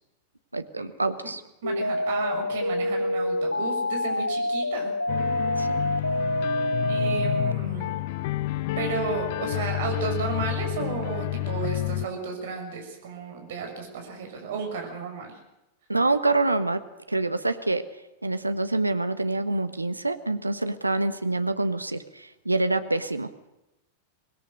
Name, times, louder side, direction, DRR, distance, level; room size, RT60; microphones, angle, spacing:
voice 1, 0.5-1.4 5.6-5.8 15.9-17.8 18.2-23.5, right 2 dB, 85° right, 10 dB, 1.4 m, -26 dB
sound 1, 1.6-7.5, left 1 dB, 85° left, 0.7 m, -27 dB
voice 2, 1.6-4.9 6.9-7.9 8.8-15.3, right 5 dB, 55° right, 2 dB, 6.1 m, -33 dB
sound 2, 5.1-12.1, left 16 dB, 50° left, 0.7 m, -29 dB
25.0 x 20.0 x 6.6 m, 0.95 s
figure-of-eight pair, 90°, 0 cm